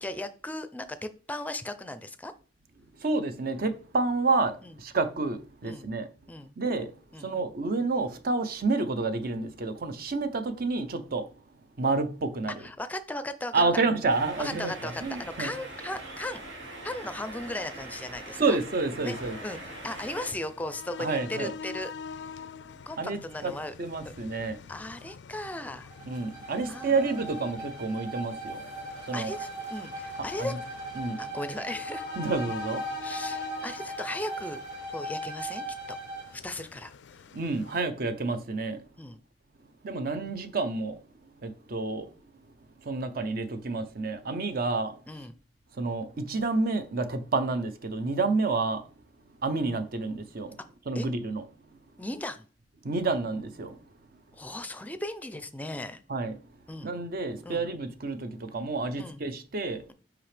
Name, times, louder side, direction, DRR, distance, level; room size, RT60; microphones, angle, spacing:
voice 1, 0.0-2.3 4.6-4.7 5.6-5.9 6.3-6.5 7.1-7.3 12.6-13.6 14.4-16.4 16.8-18.6 19.0-19.2 19.4-21.9 22.9-23.7 24.1-24.2 24.7-25.9 26.7-26.9 29.1-30.5 31.2-32.0 33.0-34.6 34.9-36.0 36.3-37.3 39.0-39.2 45.1-45.3 50.9-51.1 52.0-52.5 54.3-56.0 56.7-56.9 57.4-57.6 59.0-59.2, left 1 dB, 10° left, 0.4 m, -37 dB
voice 2, 2.9-6.1 6.6-11.4 11.8-12.6 13.5-15.5 18.4-19.4 21.0-21.5 23.0-23.5 23.8-24.6 26.0-28.7 29.0-29.3 30.2-30.5 30.9-31.2 32.2-33.0 37.3-38.8 39.8-42.1 42.8-45.3 45.7-48.9 49.4-50.6 50.9-51.4 51.7-51.8 52.8-53.8 54.1-54.2 56.1-56.4 56.8-59.8, right 3 dB, 55° right, 0.7 m, -29 dB
sound 1, 14.1-20.3, right 1 dB, 85° right, 1.6 m, -42 dB
sound 2, 19.1-37.8, left 6 dB, 70° left, 0.3 m, -46 dB
Bowed string instrument, 25.9-36.4, right 1 dB, 35° right, 2.3 m, -38 dB
6.0 x 4.9 x 3.3 m
head